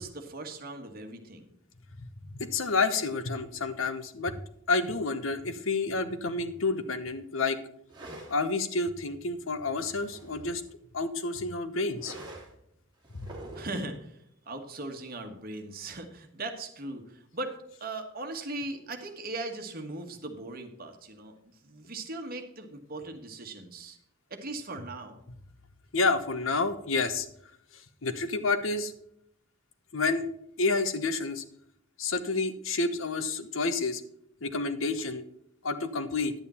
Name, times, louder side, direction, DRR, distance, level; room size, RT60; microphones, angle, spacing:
voice 1, 0.0-1.5 13.5-14.2 14.5-21.3 21.6-24.0 24.3-25.2, right 2 dB, 50° right, 5 dB, 1.4 m, -39 dB
voice 2, 2.3-4.4 4.7-7.6 8.3-10.6 10.9-12.1 25.9-27.3 28.0-28.9 29.9-30.3 30.6-31.4 32.0-34.0 34.4-35.2 35.6-36.3, left 3 dB, 85° left, 9 dB, 1.0 m, -29 dB
sound 1, 7.9-8.4 9.6-10.7 12.0-12.6 13.0-13.9, right 1 dB, 25° right, 2.7 m, -45 dB
10.5 x 8.7 x 4.3 m, 0.73 s
head